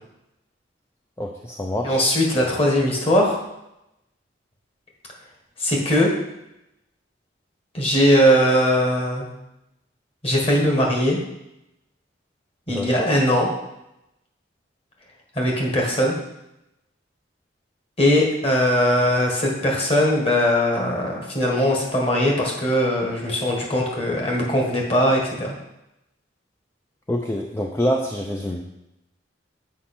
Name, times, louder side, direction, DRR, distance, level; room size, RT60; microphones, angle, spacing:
voice 1, 1.2-2.1 12.7-13.1 27.1-28.7, equal, 15° left, 1 dB, 0.4 m, -26 dB
voice 2, 1.8-3.4 5.6-6.1 7.7-9.3 10.2-11.2 12.7-13.5 15.3-16.1 18.0-25.5, equal, 30° left, -1 dB, 1.6 m, -20 dB
7.5 x 5.4 x 4.3 m, 0.89 s
head